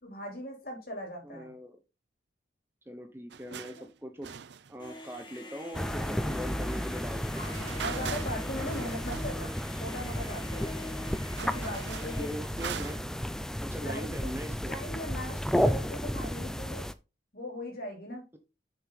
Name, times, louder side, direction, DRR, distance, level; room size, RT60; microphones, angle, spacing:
voice 1, 0.0-1.5 3.5-3.8 6.8-6.9 7.3-10.7 11.4-12.3 13.7-14.3 14.6-16.9 17.3-18.2, left 1 dB, 50° left, 3.7 m, -39 dB
voice 2, 1.2-1.8 2.9-3.8 4.0-4.3 4.7-7.5 12.2-13.0 13.6-14.7, equal, 10° right, 0.8 m, -40 dB
sound 1, 3.3-3.9 4.2-5.3 7.4-9.5 9.8-9.9 10.5-10.6 10.8-13.2, right 7 dB, 65° right, 0.5 m, -42 dB
sound 2, 4.8-12.8, left 1 dB, 25° left, 1.9 m, -45 dB
sound 3, 5.7-16.9, equal, 5° left, 0.4 m, -33 dB
7.7 x 6.5 x 3.9 m
head